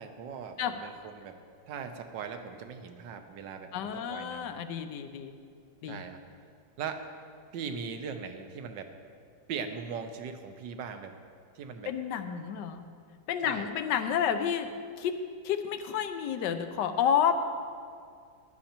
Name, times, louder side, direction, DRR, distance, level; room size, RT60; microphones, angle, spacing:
voice 1, 0.0-1.4 1.7-4.5 5.9-6.2 6.8-7.1 7.5-8.9 9.5-11.1 11.5-11.9 13.4-13.7, right 6 dB, 75° right, 7 dB, 1.4 m, -40 dB
voice 2, 3.7-5.3 5.8-6.0 11.9-12.8 13.3-14.7 15.0-15.2 15.4-17.3, left 8 dB, 70° left, 9 dB, 1.2 m, -30 dB
15.5 x 11.5 x 2.9 m, 2.2 s
omnidirectional pair, 2.1 m